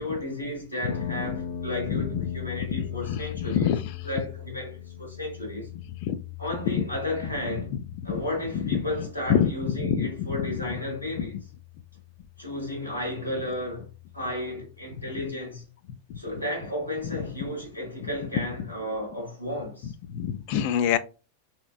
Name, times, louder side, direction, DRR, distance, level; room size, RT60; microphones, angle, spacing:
voice 1, 0.0-3.8 4.0-5.7 6.4-7.8 8.0-11.4 12.4-13.9 14.1-15.6 16.2-19.9, left 1 dB, 90° left, 1.2 m, -33 dB
sound 1, 0.9-14.9, left 9 dB, 70° left, 1.0 m, -40 dB
voice 2, 1.9-2.3 2.7-3.8 6.0-6.2 6.7-6.8 8.6-8.8 9.3-9.5 9.8-10.3 16.1-16.2 20.1-21.0, left 9 dB, 45° left, 0.3 m, -26 dB
3.4 x 2.9 x 2.4 m
figure-of-eight pair, 90°, 0 cm